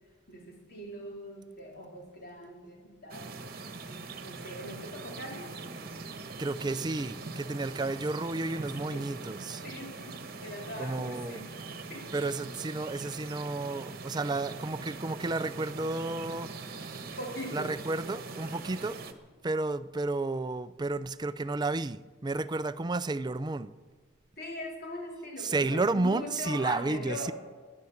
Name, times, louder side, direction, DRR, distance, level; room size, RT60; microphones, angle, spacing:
voice 1, 0.3-3.3 3.9-5.5 7.4-7.6 8.9-9.1 9.6-11.5 11.9-12.2 17.2-17.7 24.4-27.3, left 1 dB, 50° left, 4.1 m, -41 dB
sound 1, 3.1-19.1, right 3 dB, 45° right, 1.2 m, -42 dB
voice 2, 6.4-9.6 10.8-11.4 12.1-17.0 17.5-19.0 19.4-23.7 25.4-27.3, right 2 dB, 20° right, 0.4 m, -32 dB
19.0 x 11.0 x 7.1 m
head